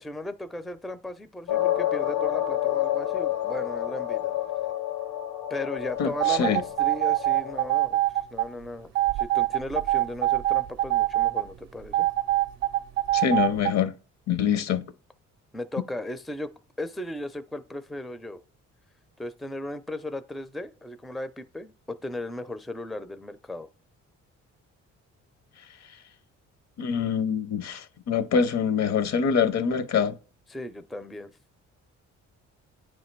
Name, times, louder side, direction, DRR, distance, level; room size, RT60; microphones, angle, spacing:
voice 1, 0.0-4.3 5.5-8.0 8.3-12.1 15.5-16.5 16.8-18.4 19.2-23.7 30.5-31.3, left 1 dB, ahead, 0.4 m, -36 dB
sound 1, 1.5-7.7, left 13 dB, 85° left, 1.2 m, -29 dB
voice 2, 6.0-6.6 13.1-13.9 14.3-14.9 26.8-30.2, left 7 dB, 60° left, 0.7 m, -25 dB
sound 2, 6.2-8.5 9.0-11.5 11.9-13.7, right 15 dB, 60° right, 0.5 m, -24 dB
9.1 x 3.2 x 4.4 m
cardioid pair, 90°, 30 cm